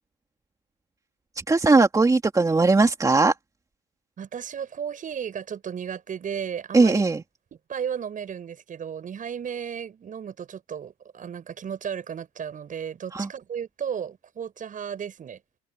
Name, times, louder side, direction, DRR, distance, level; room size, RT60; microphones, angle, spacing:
voice 1, 1.5-3.3 6.7-7.2 13.1-13.3, right 3 dB, 15° right, 2.8 m, -19 dB
voice 2, 4.2-7.0 7.7-15.4, right 8 dB, 40° right, 7.6 m, -34 dB
open air
supercardioid pair, 100°, 20 cm